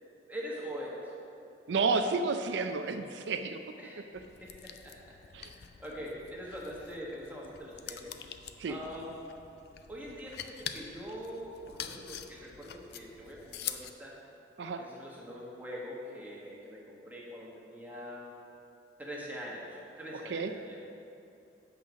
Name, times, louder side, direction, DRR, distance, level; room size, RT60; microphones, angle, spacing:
voice 1, 0.3-1.1 3.8-4.0 4.4-8.2 8.7-9.2 9.9-14.1 14.8-18.2 19.0-20.8, equal, 10° right, -5 dB, 1.4 m, -43 dB
voice 2, 1.7-3.6 5.3-5.5 8.6-8.7 14.6-14.8 20.3-20.5, right 4 dB, 75° right, 7 dB, 0.4 m, -31 dB
sound 1, 4.1-13.9, left 9 dB, 60° left, 0.4 m, -45 dB
8.7 x 5.4 x 6.1 m, 2.8 s
head